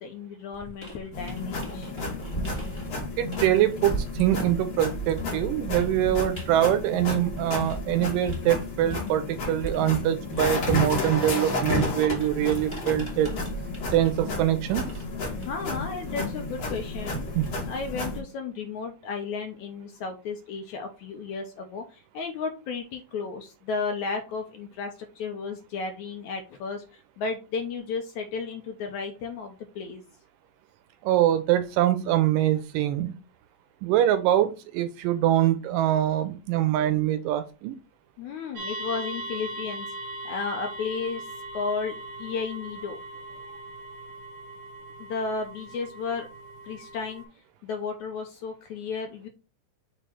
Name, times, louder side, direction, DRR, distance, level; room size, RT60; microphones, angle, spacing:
voice 1, 0.0-1.9 15.5-17.3 17.6-30.0 38.2-39.9 40.3-43.0 45.0-46.3 46.6-47.2 47.6-49.3, left 5 dB, 75° left, 4 dB, 1.9 m, -33 dB
sound 1, 0.5-7.9 8.3-17.9, right 2 dB, 10° left, 1.4 m, -39 dB
sound 2, 1.1-18.2, left 2 dB, 50° left, 2.8 m, -32 dB
voice 2, 3.2-13.3 13.9-14.8 17.4-17.5 31.0-33.1 33.8-37.8, right 12 dB, 80° right, 10 dB, 2.1 m, -24 dB
sound 3, 38.6-47.2, right 2 dB, 60° right, 1.6 m, -39 dB
6.8 x 3.1 x 4.5 m, 0.31 s
omnidirectional pair, 4.1 m